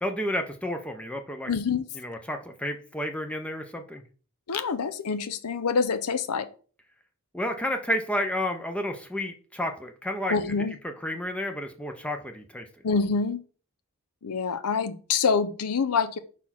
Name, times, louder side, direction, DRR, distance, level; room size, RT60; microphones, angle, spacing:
voice 1, 0.0-1.5 1.9-4.0 7.3-10.4 10.8-12.7, left 1 dB, 5° left, 5 dB, 0.6 m, -31 dB
voice 2, 1.5-1.9 4.5-6.5 10.3-10.8 12.8-13.4 14.2-16.2, left 5 dB, 90° left, 13 dB, 0.6 m, -26 dB
4.5 x 4.3 x 5.7 m, 0.39 s
head